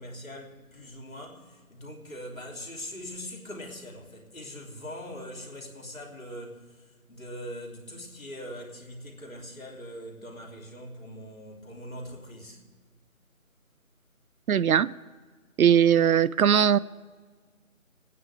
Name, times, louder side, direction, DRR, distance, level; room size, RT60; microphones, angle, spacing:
voice 1, 0.0-12.6, equal, 70° left, 3.0 m, -42 dB
voice 2, 14.5-14.9 15.6-16.8, right 9 dB, 85° right, 0.5 m, -20 dB
27.5 x 9.4 x 3.4 m
figure-of-eight pair, 175°, 42 cm